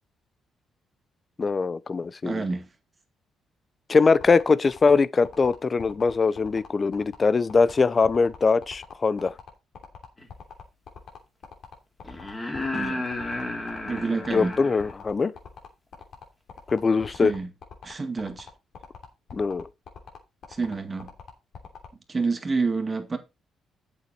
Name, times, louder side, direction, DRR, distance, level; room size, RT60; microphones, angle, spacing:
voice 1, 1.4-2.4 3.9-9.3 14.3-15.3 16.7-17.3 19.3-19.7, left 4 dB, 35° left, 0.6 m, -22 dB
voice 2, 2.2-2.7 12.7-13.1 13.9-14.6 17.2-17.5 17.8-18.5 20.5-21.1 22.1-23.2, right 4 dB, 30° right, 2.1 m, -28 dB
sound 1, 4.1-21.9, left 6 dB, 60° left, 3.0 m, -43 dB
sound 2, 10.2-10.3 12.0-14.9 17.0-17.1, left 2 dB, 20° left, 2.9 m, -32 dB
8.2 x 7.1 x 4.4 m
cardioid pair, 90°, 0 cm